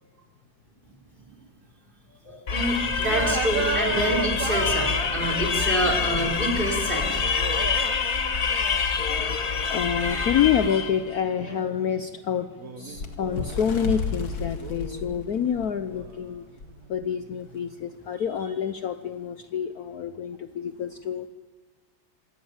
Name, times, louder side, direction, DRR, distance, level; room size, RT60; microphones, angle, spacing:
voice 1, 2.2-7.4 8.3-8.8 9.1-9.2 9.6-9.8 10.1-10.3, right 1 dB, 25° right, 2 dB, 5.3 m, -28 dB
sound 1, 2.5-11.0, left 5 dB, 40° left, 1.3 m, -26 dB
sound 2, 3.0-11.8 12.6-14.1 14.5-17.5, right 6 dB, 50° right, 1.5 m, -36 dB
voice 2, 7.0-7.8 9.0-16.4 16.9-21.3, left 8 dB, 60° left, 9 dB, 1.2 m, -28 dB
Bird, 12.9-16.1 16.6-16.8 17.0-17.3 18.1-18.2, left 3 dB, 85° left, 2.8 m, -33 dB
26.5 x 18.0 x 7.3 m, 1.2 s
omnidirectional pair, 2.1 m